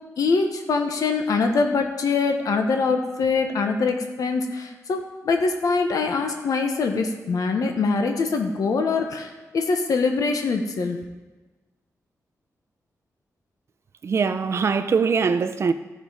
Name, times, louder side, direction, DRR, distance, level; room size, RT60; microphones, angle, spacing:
voice 1, 0.2-11.0, left 4 dB, 70° left, 0.9 m, -23 dB
voice 2, 14.0-15.7, right 5 dB, 45° right, 0.5 m, -22 dB
14.0 x 5.5 x 4.8 m
wide cardioid pair, 170°, 6 cm